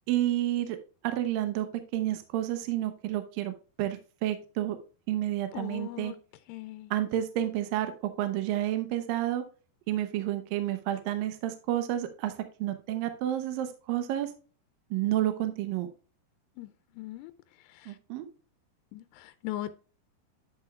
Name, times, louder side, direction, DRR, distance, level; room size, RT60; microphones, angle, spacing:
voice 1, 0.1-0.8 1.0-1.7 1.9-4.8 5.1-6.1 6.9-9.4 9.9-12.3 12.6-14.3 14.9-15.9 17.9-18.2, right 13 dB, 75° right, 2.3 m, -30 dB
voice 2, 5.5-6.1 6.5-6.9 16.6-16.7 17.0-17.3 18.9-19.8, left 14 dB, 85° left, 2.7 m, -39 dB
10.0 x 6.2 x 2.3 m
omnidirectional pair, 4.8 m